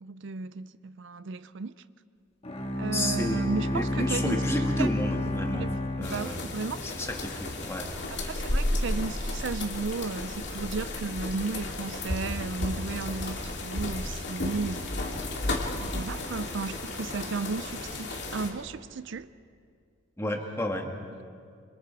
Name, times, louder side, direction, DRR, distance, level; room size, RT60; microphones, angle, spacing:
voice 1, 0.0-1.8 2.8-4.9 5.5-5.7 6.0-6.8 8.1-14.9 15.7-19.3, right 4 dB, 60° right, 0.5 m, -34 dB
Bowed string instrument, 2.4-6.9, left 1 dB, 30° left, 1.6 m, -30 dB
voice 2, 2.9-5.7 6.0-7.9 20.2-20.9, left 1 dB, 15° left, 1.9 m, -32 dB
sound 1, 6.0-18.5, left 1 dB, 55° left, 2.6 m, -33 dB
26.5 x 26.0 x 4.7 m
head